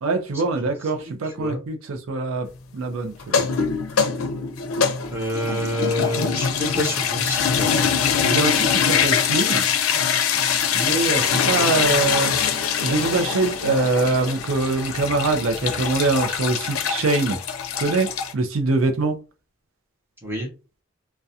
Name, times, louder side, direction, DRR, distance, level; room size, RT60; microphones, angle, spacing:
voice 1, 0.0-2.5 2.7-3.4 8.2-9.6 10.7-12.4 12.8-17.4 17.8-19.1, right 3 dB, 80° right, 0.4 m, -23 dB
voice 2, 0.6-1.6 5.1-7.9 20.2-20.5, equal, 10° right, 0.8 m, -28 dB
sound 1, 3.2-18.3, left 7 dB, 90° left, 0.5 m, -23 dB
2.3 x 2.1 x 2.7 m
head